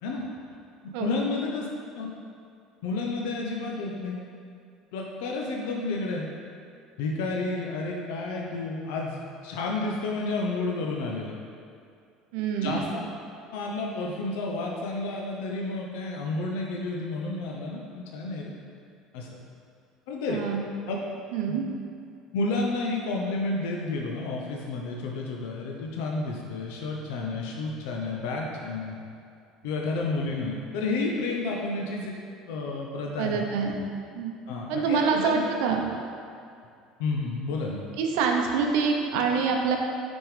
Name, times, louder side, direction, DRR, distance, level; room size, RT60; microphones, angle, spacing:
voice 1, 1.0-1.7 2.0-2.1 2.8-4.2 4.9-6.3 7.0-11.4 12.6-13.1 13.5-18.5 19.1-19.3 20.1-20.4 20.9-21.0 21.5-21.6 22.3-29.0 29.6-32.1 32.5-33.4 34.5-35.4 37.0-37.8, left 3 dB, 90° left, -1 dB, 0.8 m, -31 dB
voice 2, 12.3-12.8 20.3-20.7 21.3-21.7 33.2-33.8 34.1-34.3 34.7-35.9 38.0-39.8, right 5 dB, 80° right, 2 dB, 0.8 m, -25 dB
6.1 x 5.5 x 5.0 m, 2.4 s
cardioid pair, 150°, 0 cm